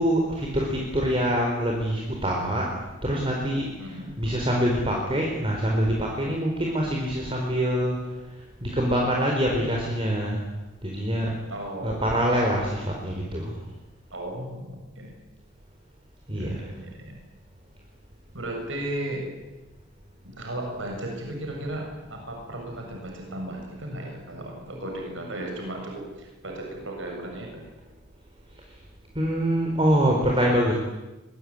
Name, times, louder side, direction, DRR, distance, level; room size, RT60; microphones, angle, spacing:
voice 1, 0.0-2.7 3.0-8.0 8.6-10.4 10.8-11.3 11.8-13.6 16.3-16.6 29.1-30.7, equal, 25° right, -1 dB, 4.4 m, -25 dB
voice 2, 3.8-4.1 11.5-12.0 14.1-15.2 16.3-17.2 18.3-19.3 20.2-27.7, right 1 dB, 70° right, 1 dB, 7.4 m, -35 dB
24.0 x 21.5 x 9.8 m, 1.1 s
head